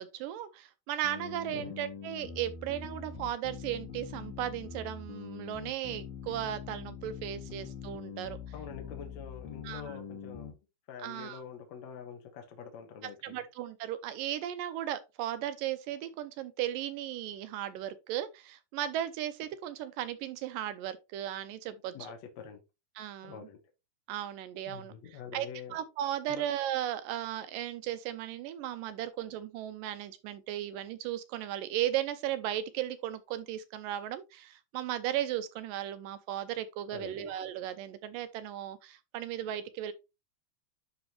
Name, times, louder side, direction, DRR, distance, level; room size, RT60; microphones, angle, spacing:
voice 1, 0.0-8.4 9.6-9.9 11.0-11.4 13.2-21.9 23.0-23.4 24.1-24.9 25.3-39.9, right 11 dB, 80° right, 2.1 m, -36 dB
sound 1, 1.0-10.5, left 6 dB, 75° left, 3.2 m, -43 dB
voice 2, 8.5-10.6 10.9-13.4 21.9-22.6 23.2-23.6 24.7-25.8 26.3-26.5 36.9-37.3, left 7 dB, 60° left, 2.0 m, -45 dB
11.0 x 3.9 x 3.0 m
omnidirectional pair, 4.3 m